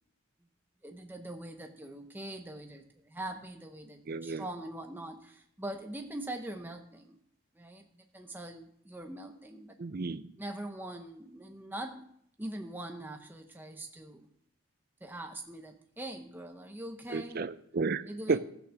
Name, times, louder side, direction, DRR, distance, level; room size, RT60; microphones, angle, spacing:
voice 1, 0.8-7.2 7.5-9.8 10.4-12.1 12.4-14.3 15.0-17.4 18.0-18.4, right 1 dB, 10° right, 4 dB, 0.7 m, -42 dB
voice 2, 4.1-4.5 9.8-10.3 17.1-18.0 18.3-18.4, right 4 dB, 45° right, 14 dB, 0.5 m, -32 dB
14.5 x 6.1 x 6.3 m, 0.71 s
head